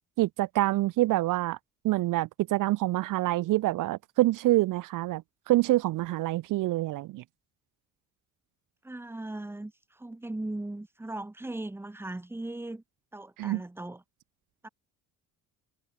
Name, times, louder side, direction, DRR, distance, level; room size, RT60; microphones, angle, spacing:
voice 1, 0.2-1.6 1.8-7.2 13.4-13.6, right 17 dB, 75° right, 1.2 m, -26 dB
voice 2, 8.8-12.8 13.1-14.0 14.6-14.7, right 2 dB, 5° right, 2.5 m, -38 dB
cardioid pair, 150°, 32 cm